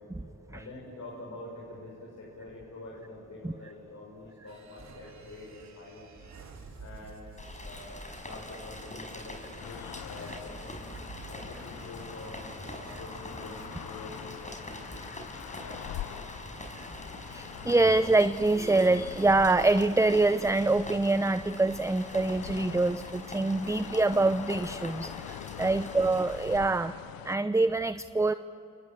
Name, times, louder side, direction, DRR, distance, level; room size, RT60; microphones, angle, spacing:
voice 1, 0.5-6.1 6.8-7.3 7.6-10.8 11.3-15.1 15.6-16.0 25.6-25.8, left 2 dB, 55° left, -3 dB, 6.9 m, -46 dB
sound 1, 4.5-13.7, right 4 dB, 55° right, 3.9 m, -52 dB
Rain, 7.4-26.6, left 1 dB, 20° left, 5.4 m, -44 dB
sound 2, 9.6-27.4, left 14 dB, 90° left, 0.7 m, -44 dB
voice 2, 17.3-26.9 27.2-28.3, right 2 dB, 10° right, 12 dB, 0.7 m, -25 dB
28.5 x 26.0 x 7.9 m, 2.9 s
supercardioid pair, 55°, 34 cm